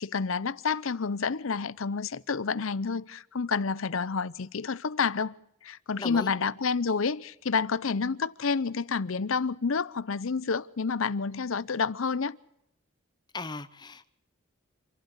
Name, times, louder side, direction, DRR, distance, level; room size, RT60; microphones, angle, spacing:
voice 1, 0.0-5.3 5.6-12.4, left 5 dB, 75° left, 0.7 m, -29 dB
voice 2, 6.0-6.3 13.3-14.1, left 3 dB, 20° left, 0.7 m, -37 dB
27.0 x 12.0 x 8.3 m
head